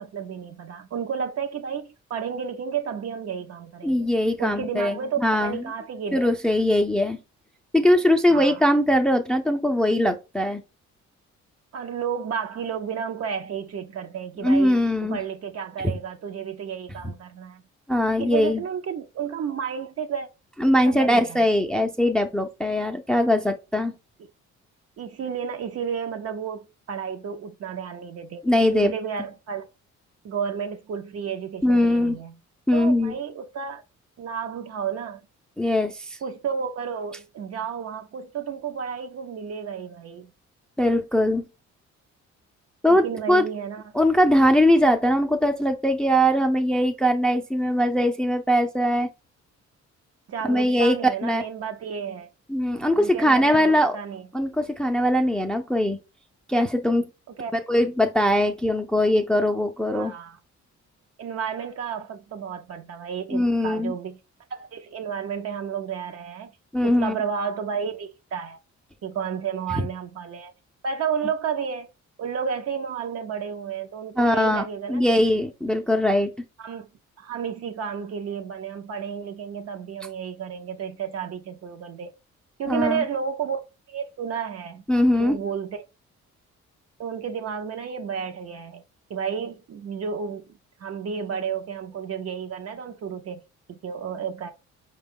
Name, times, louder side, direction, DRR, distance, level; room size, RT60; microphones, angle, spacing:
voice 1, 0.0-4.1 4.4-6.3 8.3-8.6 11.7-14.8 15.1-17.6 18.2-20.3 20.8-21.4 25.0-28.4 28.7-29.7 30.2-32.4 32.7-33.8 34.2-35.2 36.2-40.3 42.9-43.9 44.2-44.4 50.3-52.3 52.9-54.3 57.4-57.5 59.9-60.4 61.2-64.2 64.5-66.5 66.8-68.6 69.0-70.5 70.8-71.9 72.2-75.0 76.6-76.9 77.2-82.1 82.6-84.8 85.2-85.9 87.0-88.8 89.1-90.5 90.8-93.4 93.7-94.5, right 7 dB, 55° right, 0.6 m, -32 dB
voice 2, 3.8-5.6 6.1-7.2 7.7-10.6 14.4-15.2 15.8-15.9 17.9-18.6 20.6-23.9 28.4-28.9 31.6-32.2 32.7-33.1 35.6-36.2 40.8-41.4 42.8-43.4 43.9-49.1 50.5-51.0 51.2-51.4 52.5-54.0 54.3-56.0 56.5-57.1 57.5-60.1 63.3-63.9 66.7-67.2 69.7-69.8 74.2-74.6 74.9-76.3 82.7-83.0 84.9-85.4, left 1 dB, 5° left, 0.4 m, -21 dB
4.7 x 2.3 x 3.5 m
cardioid pair, 90°, 30 cm